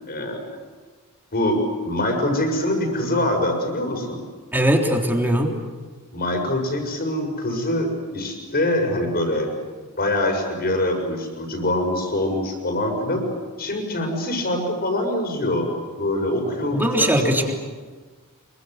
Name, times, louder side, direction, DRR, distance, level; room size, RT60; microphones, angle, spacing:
voice 1, 0.1-0.4 1.3-4.2 6.1-9.5 10.0-13.2 13.6-15.7 16.0-17.5, left 1 dB, 45° left, 3 dB, 6.7 m, -24 dB
voice 2, 4.5-5.5 16.7-17.5, right 1 dB, 10° right, 2 dB, 3.5 m, -20 dB
26.5 x 24.0 x 8.0 m, 1.4 s
head